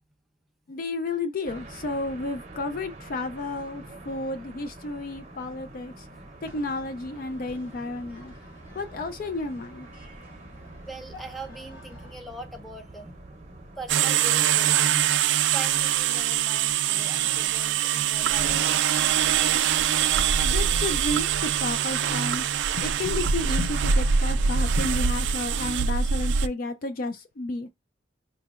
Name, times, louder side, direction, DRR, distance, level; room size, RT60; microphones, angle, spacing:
voice 1, 0.7-8.3 8.7-9.9 20.4-22.4 22.8-27.7, left 2 dB, 45° left, 0.4 m, -32 dB
sound 1, 1.4-14.0, right 2 dB, 35° right, 0.7 m, -46 dB
sound 2, 6.4-12.2, left 2 dB, 85° left, 1.1 m, -51 dB
voice 2, 10.9-13.2 13.8-18.8 20.0-20.1, right 2 dB, ahead, 0.7 m, -41 dB
sound 3, 13.9-26.5, right 8 dB, 65° right, 0.3 m, -23 dB
5.0 x 2.8 x 2.4 m
head